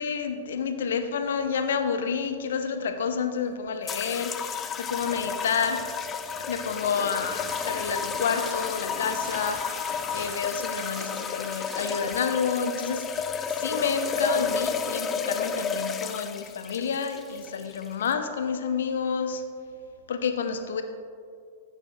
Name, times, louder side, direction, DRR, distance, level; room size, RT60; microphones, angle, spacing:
voice 1, 0.0-5.8 6.5-19.4 20.1-20.8, left 6 dB, 60° left, 7 dB, 0.8 m, -29 dB
sound 1, 3.9-18.1, left 6 dB, 25° left, 0.5 m, -32 dB
sound 2, 7.1-12.1, right 3 dB, 20° right, 1.1 m, -43 dB
15.5 x 8.0 x 2.5 m, 2.3 s
figure-of-eight pair, 95°, 0 cm